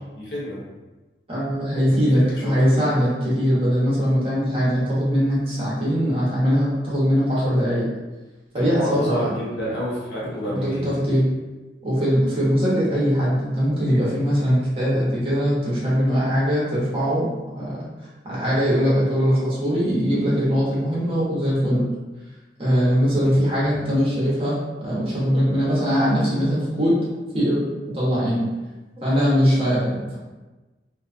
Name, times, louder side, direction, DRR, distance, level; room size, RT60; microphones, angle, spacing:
voice 1, 0.2-0.6 1.9-2.1 2.4-2.8 8.5-10.9 23.1-23.5, equal, 80° left, -5 dB, 0.8 m, -29 dB
voice 2, 1.3-7.8 8.5-9.2 10.5-11.2 11.8-17.3 17.5-17.8 18.2-21.8 22.6-27.0 27.3-28.4 29.0-30.2, equal, 30° right, -8 dB, 0.9 m, -21 dB
2.6 x 2.3 x 2.5 m, 1.2 s
head